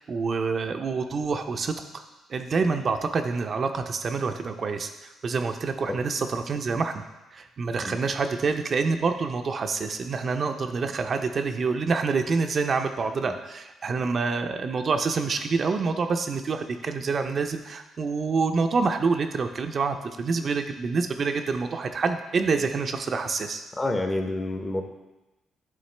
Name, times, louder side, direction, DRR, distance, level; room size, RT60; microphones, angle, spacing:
voice 1, 0.0-2.0 2.3-7.0 7.3-23.7, right 4 dB, 45° right, 6 dB, 0.4 m, -27 dB
voice 2, 23.8-24.8, left 2 dB, 25° left, 5 dB, 0.7 m, -28 dB
9.5 x 3.6 x 3.2 m, 1.1 s
cardioid pair, 90°, 0 cm